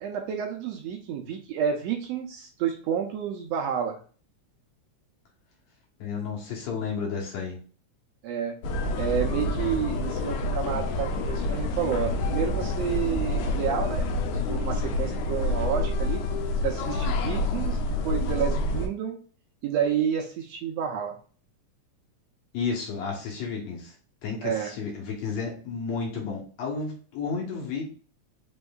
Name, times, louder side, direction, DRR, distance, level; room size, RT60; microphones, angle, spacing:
voice 1, 0.0-4.0 8.2-8.6 9.0-16.2 16.6-19.2 19.6-21.2 24.4-24.7, right 8 dB, 75° right, 3 dB, 1.6 m, -30 dB
voice 2, 6.0-7.6 22.5-23.9 24.2-27.9, left 5 dB, 70° left, -1 dB, 2.4 m, -32 dB
sound 1, 8.6-18.9, left 2 dB, 85° left, 2.1 m, -28 dB
5.2 x 3.5 x 2.3 m, 0.40 s
omnidirectional pair, 3.3 m